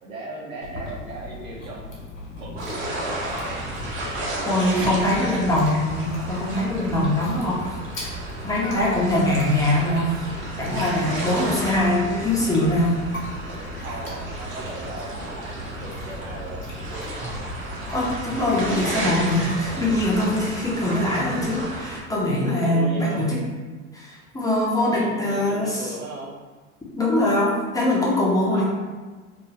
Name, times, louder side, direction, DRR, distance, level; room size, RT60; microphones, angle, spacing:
voice 1, 0.0-2.1 2.4-3.1 4.8-5.6 11.1-11.5 13.7-16.6 22.5-23.3 24.9-26.3 28.5-28.6, right 2 dB, 85° right, -3 dB, 0.7 m, -37 dB
Chewing mastication, 0.6-20.1, left 1 dB, 90° left, 0.7 m, -38 dB
sound 1, 2.6-22.0, right 1 dB, 30° right, 0.8 m, -33 dB
voice 2, 4.5-7.6 7.9-10.3 10.6-12.9 13.7-13.8 17.9-23.4 23.9-25.8 27.0-28.6, left 1 dB, 10° left, -5 dB, 0.5 m, -22 dB
2.3 x 2.3 x 3.1 m, 1.4 s
figure-of-eight pair, 75°, 40 cm